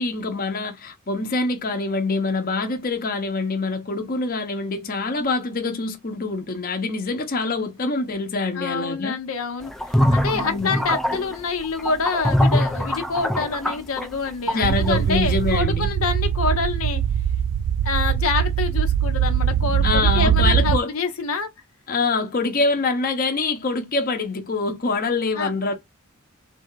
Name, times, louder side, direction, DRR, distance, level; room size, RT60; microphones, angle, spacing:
voice 1, 0.0-9.1 10.3-10.8 14.5-15.9 19.8-20.9 21.9-25.7, left 3 dB, 45° left, 0.8 m, -25 dB
voice 2, 8.5-17.0 17.8-21.5 25.4-25.7, left 4 dB, 85° left, 0.8 m, -27 dB
sound 1, 9.7-15.0, left 1 dB, ahead, 0.3 m, -22 dB
sound 2, 14.6-20.8, right 9 dB, 90° right, 0.3 m, -21 dB
3.7 x 2.4 x 4.4 m
head